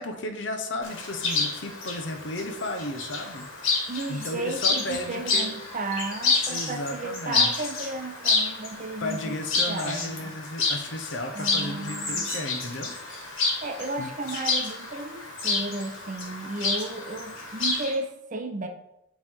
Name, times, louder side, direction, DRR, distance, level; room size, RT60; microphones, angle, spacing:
voice 1, 0.0-3.5 4.1-5.5 6.5-7.7 9.0-12.9 14.0-14.1, left 1 dB, 65° left, 6 dB, 0.7 m, -34 dB
Chirp tweet, 0.8-17.9, left 3 dB, 85° left, 1.6 m, -29 dB
voice 2, 3.9-9.4 9.7-10.3 11.3-12.3 13.6-18.7, right 2 dB, 40° right, 4 dB, 0.6 m, -34 dB
9.0 x 3.2 x 3.6 m, 0.86 s
head